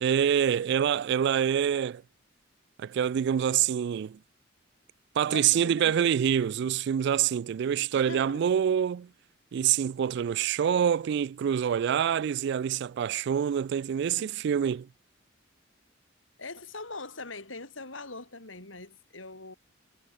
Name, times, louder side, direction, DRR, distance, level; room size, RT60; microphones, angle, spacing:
voice 1, 0.0-2.0 2.8-4.2 5.2-9.1 9.5-14.9, right 8 dB, 60° right, 0.3 m, -26 dB
voice 2, 5.2-6.1 7.9-8.4 14.2-14.4 16.4-19.6, left 3 dB, 75° left, 6.4 m, -42 dB
head